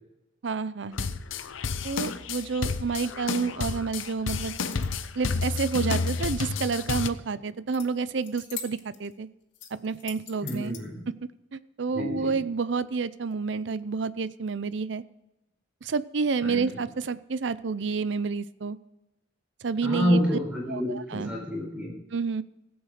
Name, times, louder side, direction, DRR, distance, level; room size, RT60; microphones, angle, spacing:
voice 1, 0.4-1.1 1.8-4.5 5.2-9.3 9.8-10.7 11.5-15.0 15.8-18.8 19.6-20.2 20.7-21.3 22.1-22.4, right 5 dB, 65° right, 16 dB, 0.5 m, -29 dB
sound 1, 0.9-7.1, left 4 dB, 90° left, 0.7 m, -30 dB
sound 2, 4.7-5.1 7.7-7.9 8.2-9.1 9.5-10.8, left 8 dB, 70° left, 2.2 m, -42 dB
voice 2, 10.4-11.0 11.9-12.3 16.4-16.8 19.8-21.9, equal, 5° right, -3 dB, 4.4 m, -28 dB
16.0 x 8.0 x 5.0 m, 0.94 s
head